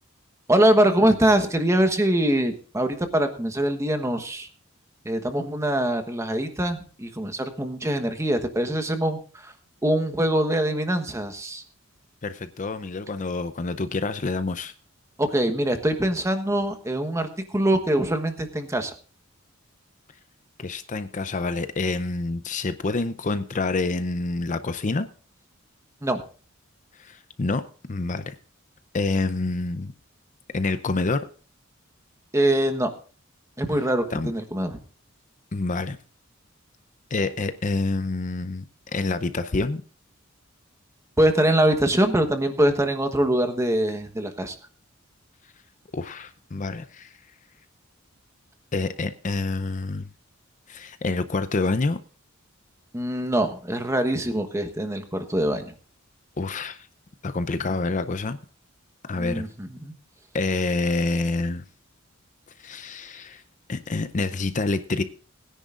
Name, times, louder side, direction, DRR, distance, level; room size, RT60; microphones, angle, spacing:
voice 1, 0.5-4.5 5.0-9.5 9.8-11.6 15.2-18.9 26.0-26.2 32.3-32.9 33.6-34.8 41.2-44.5 52.9-55.7 59.2-59.9, right 1 dB, 15° right, 7 dB, 1.2 m, -23 dB
voice 2, 12.2-14.7 20.6-25.1 27.0-28.3 28.9-29.9 30.5-31.3 34.1-34.3 35.5-36.0 37.1-38.6 38.9-39.8 45.9-47.2 48.7-50.1 50.7-52.0 56.4-56.9 57.2-58.4 59.1-59.5 60.3-61.6 62.6-63.4 63.7-65.0, left 3 dB, 35° left, 11 dB, 0.6 m, -27 dB
20.5 x 10.0 x 2.5 m, 0.38 s
head